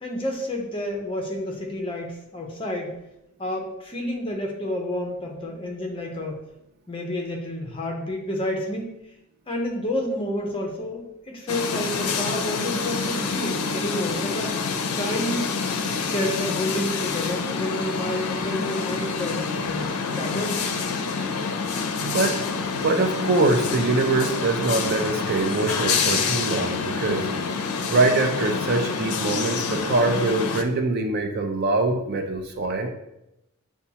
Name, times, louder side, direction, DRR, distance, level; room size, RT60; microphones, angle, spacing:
voice 1, 0.0-3.0 3.4-6.4 6.9-8.9 9.5-14.5 15.0-15.6 16.0-20.6, left 1 dB, 25° left, 1 dB, 0.6 m, -30 dB
sound 1, 11.5-30.6, left 5 dB, 80° left, 0.4 m, -27 dB
voice 2, 22.0-27.3 27.5-32.9, right 3 dB, 45° right, 5 dB, 0.4 m, -24 dB
6.7 x 2.3 x 2.8 m, 0.87 s
head